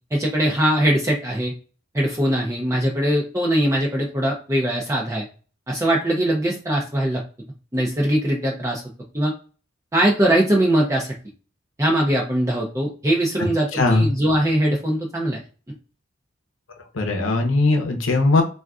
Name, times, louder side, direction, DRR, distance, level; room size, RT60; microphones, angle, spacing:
voice 1, 0.1-1.5 1.9-5.3 5.7-7.2 7.7-8.8 9.1-9.3 9.9-11.2 11.8-15.4, right 1 dB, 15° right, -1 dB, 0.5 m, -21 dB
voice 2, 13.7-14.1 16.9-18.4, left 2 dB, 80° left, 3 dB, 0.7 m, -19 dB
3.7 x 2.4 x 2.3 m, 0.37 s
head